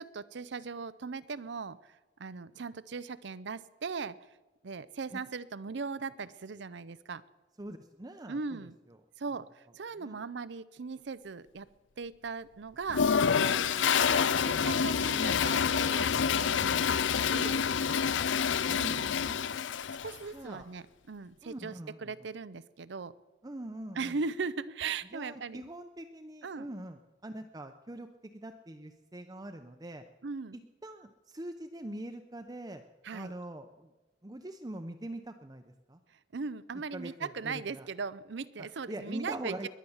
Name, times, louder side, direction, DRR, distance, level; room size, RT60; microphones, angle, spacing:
voice 1, 0.0-4.2 4.6-7.2 8.3-8.8 9.2-11.7 12.0-17.6 18.7-19.3 20.0-21.7 22.0-23.1 24.0-25.6 26.4-26.7 30.2-30.6 33.0-33.3 36.3-39.7, right 4 dB, 65° right, 16 dB, 0.6 m, -39 dB
voice 2, 7.6-8.6 8.9-9.0 10.0-10.2 15.2-15.4 18.6-19.6 20.3-20.7 21.4-22.1 23.4-24.2 25.1-30.0 30.5-32.8 33.1-33.9 34.2-36.0 36.9-37.9 38.6-39.7, right 1 dB, 20° right, 6 dB, 0.7 m, -43 dB
Toilet flush, 12.9-20.2, left 7 dB, 75° left, 0.5 m, -27 dB
21.5 x 9.3 x 7.1 m, 1.2 s
head